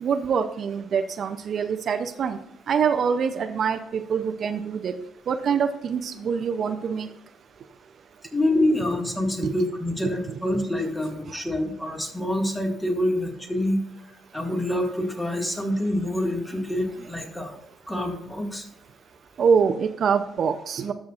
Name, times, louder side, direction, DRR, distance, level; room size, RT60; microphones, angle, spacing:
voice 1, 0.0-2.4 2.7-5.0 5.3-7.1 9.4-9.5 19.4-20.9, right 6 dB, 60° right, 8 dB, 0.5 m, -24 dB
voice 2, 8.3-13.8 14.3-17.6 17.9-18.7, left 1 dB, 15° left, 1 dB, 1.9 m, -26 dB
13.0 x 6.3 x 2.4 m, 0.79 s
cardioid pair, 90°, 0 cm